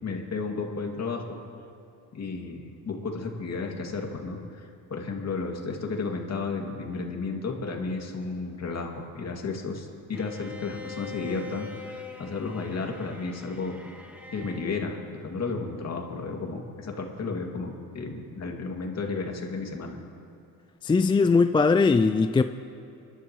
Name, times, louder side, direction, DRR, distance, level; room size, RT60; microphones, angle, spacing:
voice 1, 0.0-1.4 2.1-13.8 14.3-20.0, left 4 dB, 45° left, 1 dB, 2.4 m, -33 dB
Bowed string instrument, 10.1-14.8, left 3 dB, 5° right, 1.8 m, -43 dB
voice 2, 20.8-22.4, left 4 dB, 15° left, 9 dB, 0.3 m, -20 dB
27.5 x 12.0 x 3.1 m, 2.8 s
cardioid pair, 90°, 35 cm